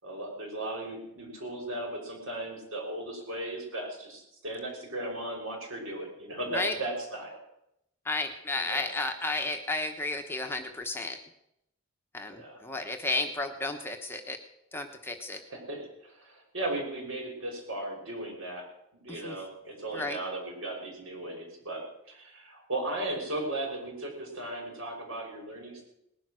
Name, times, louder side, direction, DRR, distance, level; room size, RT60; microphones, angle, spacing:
voice 1, 0.0-7.4 8.6-8.9 12.3-12.6 15.3-18.6 19.0-25.8, right 1 dB, 65° right, 0 dB, 5.7 m, -36 dB
voice 2, 8.0-11.2 12.1-14.4 14.7-15.4 19.1-19.3 19.9-20.2, left 2 dB, 10° left, 4 dB, 1.0 m, -32 dB
19.5 x 11.0 x 6.3 m, 0.82 s
head